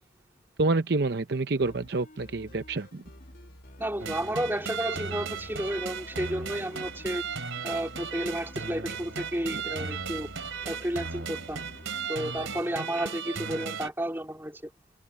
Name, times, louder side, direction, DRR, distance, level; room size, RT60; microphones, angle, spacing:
voice 1, 0.6-3.0 9.5-9.6, right 3 dB, 55° right, 0.7 m, -28 dB
sound 1, 1.6-12.6, left 1 dB, 45° left, 2.4 m, -50 dB
voice 2, 3.8-7.2 7.6-10.3 10.6-11.6 12.1-14.7, right 1 dB, 10° right, 2.8 m, -32 dB
sound 2, 4.0-13.9, right 5 dB, 80° right, 3.0 m, -36 dB
head